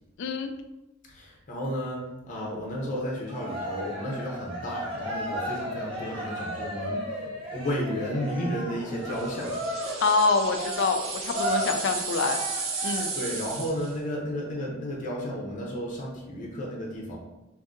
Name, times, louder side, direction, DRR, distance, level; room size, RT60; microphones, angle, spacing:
voice 1, 0.2-0.5 10.0-12.4 12.8-13.1, left 4 dB, 60° left, 6 dB, 0.4 m, -25 dB
voice 2, 1.1-9.5 13.1-17.2, equal, 40° left, -3 dB, 0.7 m, -33 dB
Cheering, 3.3-13.3, equal, 25° right, 1.1 m, -34 dB
sound 1, 9.1-14.0, right 4 dB, 80° right, 0.8 m, -34 dB
2.6 x 2.6 x 3.6 m, 0.98 s
head